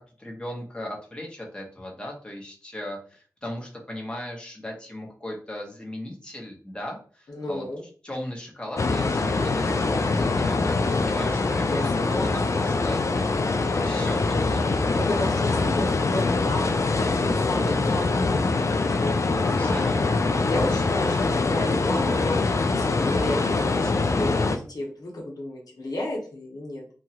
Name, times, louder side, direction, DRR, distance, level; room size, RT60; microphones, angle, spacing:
voice 1, 0.2-7.7 8.0-10.7 11.0-15.5 17.6-18.1 19.6-20.2, left 1 dB, 15° left, -1 dB, 0.9 m, -37 dB
voice 2, 7.3-7.8 11.7-12.6 14.0-14.4 14.9-19.8 20.4-26.8, left 1 dB, 80° left, -1 dB, 0.8 m, -33 dB
sound 1, 8.8-24.6, left 3 dB, 50° left, 0.3 m, -24 dB
2.9 x 2.3 x 2.8 m, 0.42 s
wide cardioid pair, 60°, 6 cm